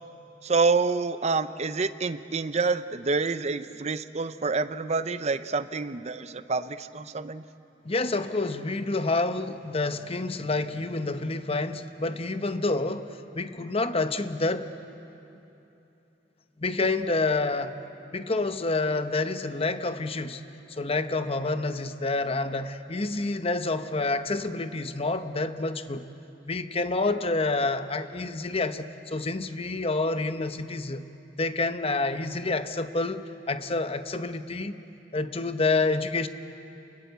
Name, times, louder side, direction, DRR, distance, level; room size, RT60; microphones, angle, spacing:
voice 1, 0.4-7.4, right 4 dB, 35° right, 12 dB, 0.6 m, -27 dB
voice 2, 7.8-14.7 16.6-17.7 18.1-20.4 20.7-26.0 26.5-31.0 31.4-34.8 35.1-36.3, left 3 dB, 30° left, 9 dB, 0.9 m, -28 dB
29.0 x 20.5 x 8.0 m, 2.9 s
head